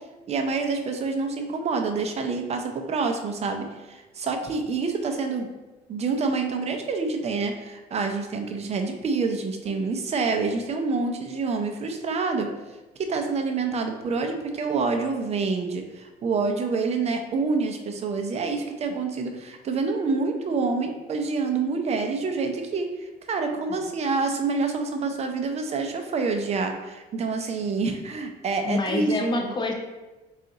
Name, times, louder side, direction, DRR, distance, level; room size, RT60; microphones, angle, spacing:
voice 1, 0.3-5.5 5.9-12.5 13.0-29.5, right 4 dB, 40° right, 4 dB, 0.5 m, -27 dB
voice 2, 28.6-29.7, left 2 dB, 25° left, 3 dB, 0.6 m, -27 dB
3.9 x 2.4 x 3.8 m, 1.1 s
cardioid pair, 110°, 17 cm